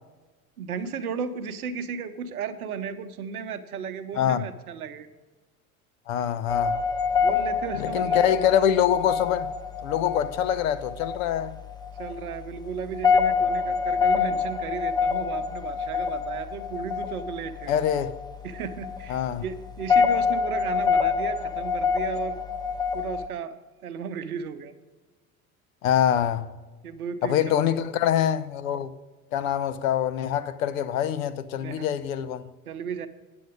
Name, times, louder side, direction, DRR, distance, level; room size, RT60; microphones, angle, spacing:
voice 1, 0.6-5.1 7.2-8.3 12.0-17.7 18.4-22.4 22.9-23.6 23.8-24.7 26.8-27.8 31.6-31.9 32.7-33.1, right 6 dB, 75° right, 0.8 m, -34 dB
voice 2, 6.1-6.8 7.8-9.5 9.8-11.6 17.7-18.1 19.1-19.4 25.8-26.5 27.2-28.9 29.3-32.5, left 10 dB, 65° left, 0.7 m, -25 dB
sound 1, 6.5-23.3, left 6 dB, 10° left, 0.6 m, -26 dB
8.5 x 7.8 x 5.0 m
figure-of-eight pair, 70°, 44 cm